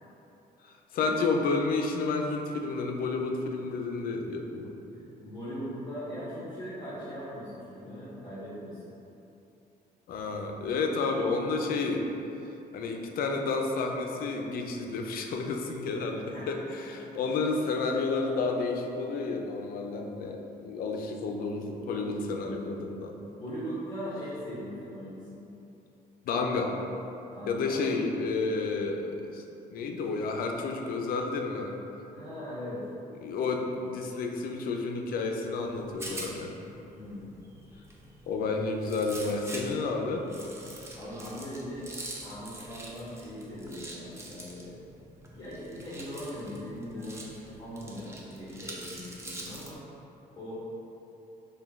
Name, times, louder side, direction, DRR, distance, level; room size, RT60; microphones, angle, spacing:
voice 1, 0.6-4.8 10.1-12.1 12.7-23.1 26.2-26.8 27.5-29.4 29.7-31.8 33.2-36.5 38.3-40.3 42.3-42.4, left 3 dB, 60° left, 2 dB, 0.4 m, -31 dB
voice 2, 4.9-8.8 15.9-16.5 23.3-25.5 27.3-28.0 32.1-32.8 36.9-37.3 40.9-41.9 42.2-44.7 45.3-49.8 50.3-50.5, equal, 25° left, -11 dB, 0.9 m, -40 dB
Rattle, 35.6-49.7, right 1 dB, 15° right, 0.4 m, -45 dB
5.1 x 2.2 x 3.5 m, 2.9 s
cardioid pair, 165°, 17 cm